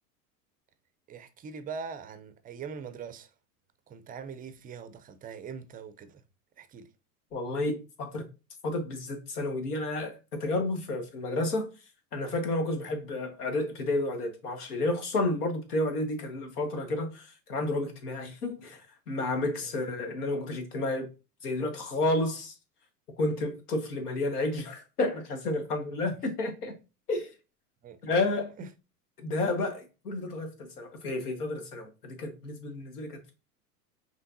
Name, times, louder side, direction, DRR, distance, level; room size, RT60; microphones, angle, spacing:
voice 1, 1.1-3.3 3.9-6.2 6.6-6.9 19.6-19.7 27.8-28.0 28.6-28.7, right 6 dB, 20° right, 0.5 m, -42 dB
voice 2, 7.3-8.3 8.6-11.7 12.1-21.1 21.4-22.5 23.2-26.7 27.1-27.3 28.0-28.5 29.2-33.3, left 2 dB, 75° left, 1.5 m, -31 dB
5.6 x 3.5 x 2.6 m
hypercardioid pair, 90°, 46 cm